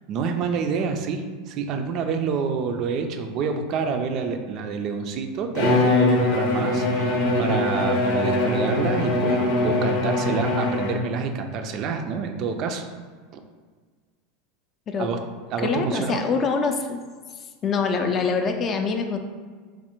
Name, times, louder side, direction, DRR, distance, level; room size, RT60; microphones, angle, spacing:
voice 1, 0.1-12.8 15.0-15.2 15.5-16.2, right 5 dB, 50° right, 6 dB, 0.3 m, -27 dB
Bowed string instrument, 5.5-11.2, left 2 dB, 75° left, 0.6 m, -22 dB
voice 2, 15.6-17.0 17.6-19.2, left 5 dB, 35° left, 5 dB, 0.3 m, -24 dB
3.1 x 2.1 x 2.9 m, 1.5 s
supercardioid pair, 110°, 0 cm